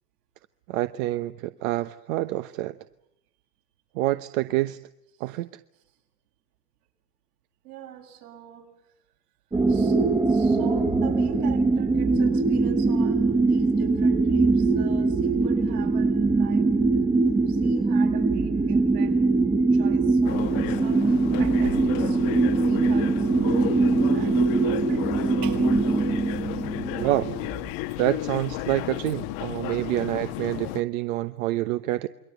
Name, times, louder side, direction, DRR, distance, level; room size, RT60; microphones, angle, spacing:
voice 1, 0.7-2.8 3.9-4.8 5.2-5.5 27.0-27.2 28.0-32.1, right 16 dB, 60° right, 11 dB, 1.1 m, -27 dB
voice 2, 7.6-8.7 9.7-10.0 10.3-17.0 17.5-19.2 19.7-27.6 27.9-28.0 29.8-29.9, right 9 dB, 80° right, 2 dB, 7.7 m, -42 dB
sound 1, 9.5-27.7, right 3 dB, 10° right, 1.4 m, -22 dB
sound 2, 20.2-30.8, left 16 dB, 55° left, 1.3 m, -33 dB
28.5 x 22.0 x 8.2 m, 0.83 s
hypercardioid pair, 120°, 47 cm